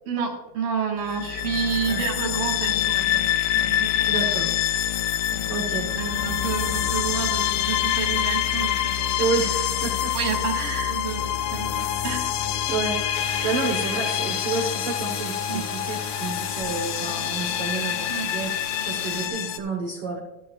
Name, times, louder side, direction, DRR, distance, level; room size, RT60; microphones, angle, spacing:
voice 1, 0.1-3.2 3.5-4.3 5.3-5.6 5.9-9.1 10.1-10.6 10.9-11.2 11.5-12.3 15.5-15.7 18.1-18.3, right 6 dB, 80° right, 0 dB, 3.2 m, -30 dB
sound 1, 1.0-19.6, left 11 dB, 80° left, 2.1 m, -26 dB
voice 2, 4.0-4.5 5.5-5.8 9.2-10.1 10.5-10.9 12.7-18.5 18.9-20.2, right 4 dB, 60° right, 2 dB, 1.5 m, -30 dB
sound 2, 13.1-19.3, left 5 dB, 45° left, 1.9 m, -36 dB
13.5 x 12.5 x 2.4 m, 0.96 s
omnidirectional pair, 3.9 m